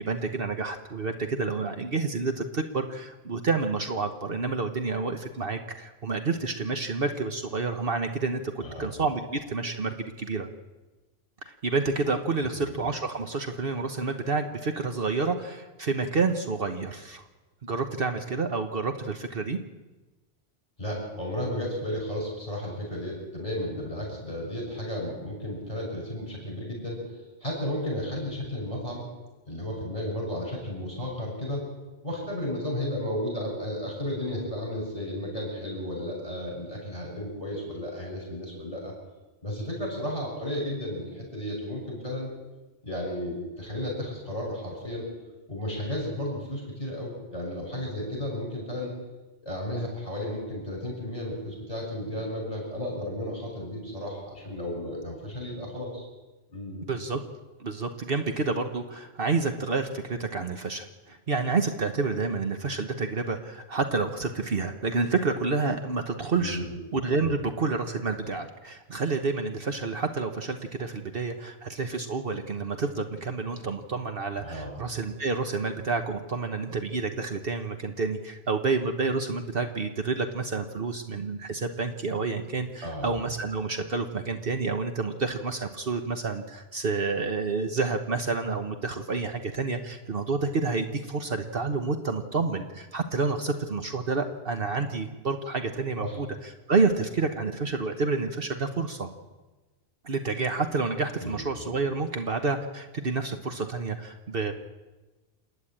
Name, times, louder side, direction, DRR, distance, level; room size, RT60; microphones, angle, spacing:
voice 1, 0.0-10.5 11.4-17.3 17.6-19.6 56.9-57.2 57.6-96.3 96.7-99.1 100.0-104.5, right 4 dB, 60° right, 6 dB, 1.3 m, -29 dB
voice 2, 20.8-29.0 29.5-31.6 32.0-38.9 39.4-42.3 42.8-45.1 45.5-48.9 49.4-56.1 56.5-56.9 66.4-66.8 74.4-74.7 82.8-83.2 96.0-96.2 101.2-101.4, left 1 dB, 35° left, -2 dB, 6.7 m, -33 dB
28.5 x 10.5 x 8.8 m, 1.1 s
omnidirectional pair, 1.1 m